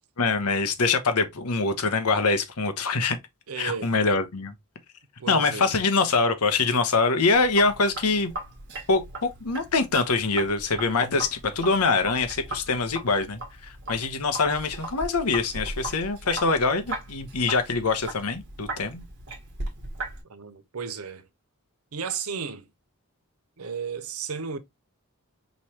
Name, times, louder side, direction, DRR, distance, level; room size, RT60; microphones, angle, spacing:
voice 1, 0.2-3.2 3.6-4.5 5.3-8.3 8.9-19.0, left 4 dB, 85° left, 0.9 m, -24 dB
voice 2, 3.5-3.9 5.2-5.8 20.3-21.3 21.9-22.7 23.6-24.6, right 6 dB, 75° right, 0.7 m, -34 dB
Sink (filling or washing), 7.3-20.2, right 2 dB, 55° right, 1.5 m, -38 dB
5.2 x 3.1 x 2.9 m
head